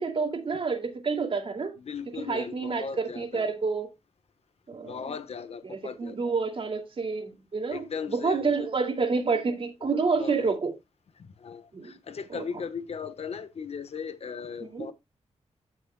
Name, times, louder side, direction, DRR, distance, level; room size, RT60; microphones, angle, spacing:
voice 1, 0.0-1.7 2.2-3.9 4.7-5.0 5.6-10.7 11.7-11.9 12.3-12.4 14.7-14.9, right 4 dB, 50° right, 2.4 m, -29 dB
voice 2, 1.8-3.5 4.8-6.3 7.7-8.5 9.8-9.9 10.2-10.5 11.2-14.9, left 6 dB, 65° left, 1.2 m, -38 dB
16.0 x 6.2 x 2.2 m
wide cardioid pair, 120°, 11 cm